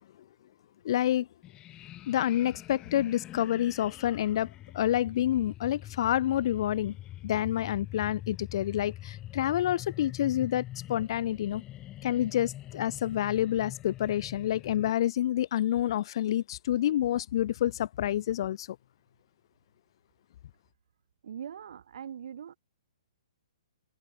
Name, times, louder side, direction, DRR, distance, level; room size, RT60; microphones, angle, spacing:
voice 1, 0.8-1.3 2.1-7.0 7.2-10.6 10.9-11.6 12.0-18.8, left 12 dB, 50° left, 0.5 m, -28 dB
sound 1, 1.4-14.9, left 14 dB, 25° left, 2.4 m, -45 dB
voice 2, 21.2-22.6, right 8 dB, 60° right, 1.5 m, -41 dB
figure-of-eight pair, 125°, 3 cm